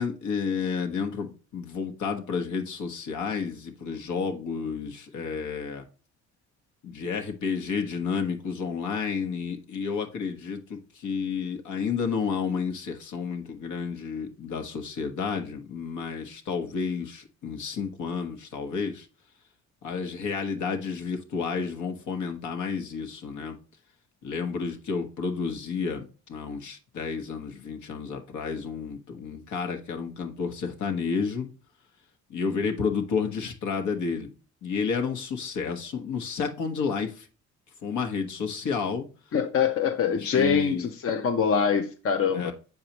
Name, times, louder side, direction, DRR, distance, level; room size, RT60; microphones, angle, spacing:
voice 1, 0.0-5.8 6.8-19.1 19.8-23.6 24.2-31.5 32.3-34.3 34.6-37.3 37.8-39.0 40.1-40.9 42.3-42.5, left 5 dB, 75° left, 1.3 m, -31 dB
voice 2, 39.3-42.5, left 6 dB, 50° left, 0.7 m, -24 dB
6.9 x 4.8 x 2.9 m
cardioid pair, 90°, 30 cm